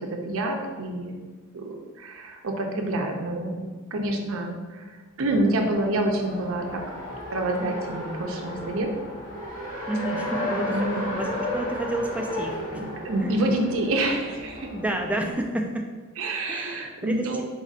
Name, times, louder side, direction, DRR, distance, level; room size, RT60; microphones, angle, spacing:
voice 1, 0.3-1.3 1.5-7.0 7.3-8.9 10.7-11.1 12.7-14.7 16.2-17.4, right 1 dB, 65° right, 3 dB, 0.6 m, -28 dB
Race car auto racing, 5.3-15.3, left 1 dB, 65° left, 1.2 m, -34 dB
voice 2, 9.9-12.8 13.2-13.3 14.7-15.9 16.5-17.4, right 1 dB, 5° right, 2 dB, 0.3 m, -30 dB
4.1 x 2.4 x 4.1 m, 1.4 s
head